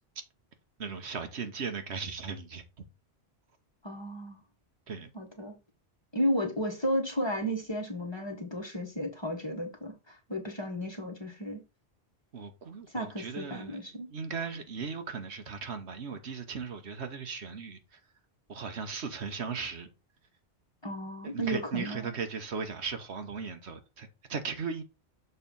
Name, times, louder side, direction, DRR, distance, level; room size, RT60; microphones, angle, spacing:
voice 1, 0.8-2.6 4.9-5.1 12.3-17.8 18.5-19.9 21.2-24.8, right 5 dB, 75° right, 1.4 m, -37 dB
voice 2, 3.8-4.4 5.1-5.5 6.1-11.6 12.9-14.1 20.8-22.1, equal, 25° left, 1.5 m, -33 dB
6.9 x 3.4 x 5.3 m
omnidirectional pair, 1.1 m